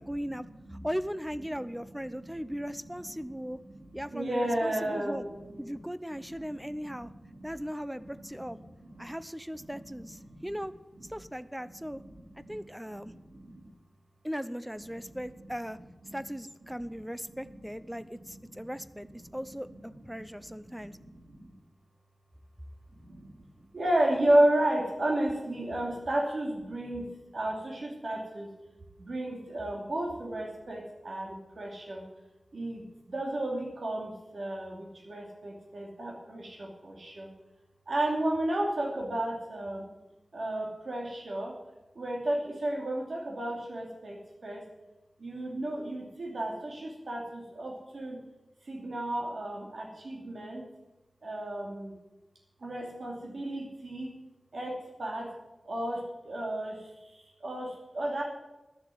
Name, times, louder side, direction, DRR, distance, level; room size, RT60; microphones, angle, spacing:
voice 1, 0.0-0.5 0.8-3.6 3.9-5.2 5.6-7.1 7.4-8.6 9.0-10.7 11.1-12.0 12.5-13.1 14.2-15.8 16.1-19.1 19.3-20.9, equal, 5° right, 14 dB, 0.6 m, -38 dB
voice 2, 3.2-3.8 4.1-5.8 6.3-7.5 7.9-9.2 9.6-9.8 10.3-10.7 11.0-11.1 11.9-12.6 12.9-13.7 15.0-15.2 16.0-16.2 16.9-17.0 17.3-19.4 19.9-20.2 20.5-21.5 23.0-23.4 23.7-28.5 29.0-32.0 32.5-37.3 37.9-39.9 40.3-41.5 41.9-44.6 45.2-48.2 48.7-50.7 51.2-51.9 52.6-54.1 54.5-55.3 55.7-58.2, right 1 dB, 65° right, -1 dB, 2.6 m, -33 dB
12.5 x 7.1 x 9.2 m, 1.1 s
wide cardioid pair, 95°, 0 cm